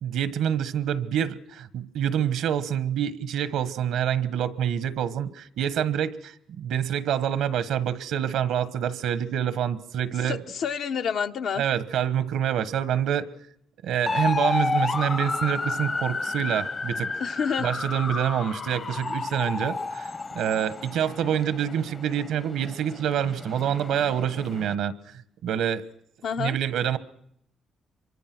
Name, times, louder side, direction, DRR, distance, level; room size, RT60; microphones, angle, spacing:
voice 1, 0.0-10.4 11.6-13.3 13.8-17.2 17.6-24.9 25.4-25.8 26.4-27.0, right 9 dB, 85° right, 1.3 m, -26 dB
voice 2, 10.2-11.6 17.2-17.7 26.2-26.6, left 7 dB, 65° left, 0.9 m, -28 dB
sound 1, 14.1-24.7, left 3 dB, 35° left, 0.8 m, -31 dB
26.0 x 23.5 x 6.1 m
cardioid pair, 90°, 0 cm